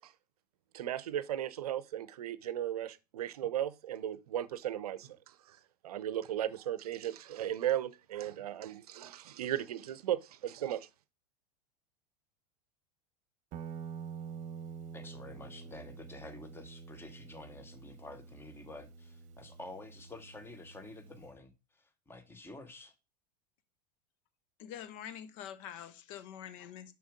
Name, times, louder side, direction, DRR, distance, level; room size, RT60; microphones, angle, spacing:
voice 1, 0.7-5.6 5.8-10.9, right 11 dB, 65° right, 0.7 m, -36 dB
Guitar, 13.5-21.3, right 6 dB, 35° right, 1.0 m, -47 dB
voice 2, 14.9-22.9, left 2 dB, 10° left, 1.2 m, -50 dB
voice 3, 24.6-26.9, left 10 dB, 50° left, 1.0 m, -45 dB
7.2 x 6.1 x 3.6 m
figure-of-eight pair, 90°, 21 cm